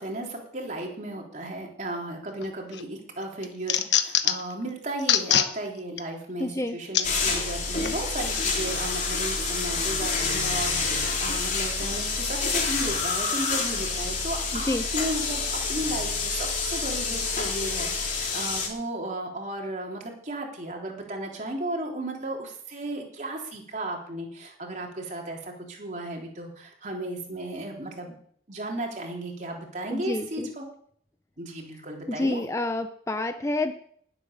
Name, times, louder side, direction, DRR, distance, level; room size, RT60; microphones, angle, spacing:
voice 1, 0.0-28.1 28.5-30.6 31.4-32.4, right 1 dB, 40° right, 0 dB, 3.5 m, -35 dB
sound 1, 2.4-2.8 3.2-4.5 5.0-5.5 6.0-6.1 6.9-7.1 7.8-8.0, left 10 dB, 80° left, 1.2 m, -23 dB
voice 2, 6.4-6.8 14.5-14.8 29.9-30.5 32.1-33.7, left 2 dB, 15° left, 8 dB, 0.7 m, -28 dB
sound 2, 7.0-18.7, left 4 dB, 45° left, 3.3 m, -28 dB
19.5 x 8.2 x 6.6 m, 0.63 s
head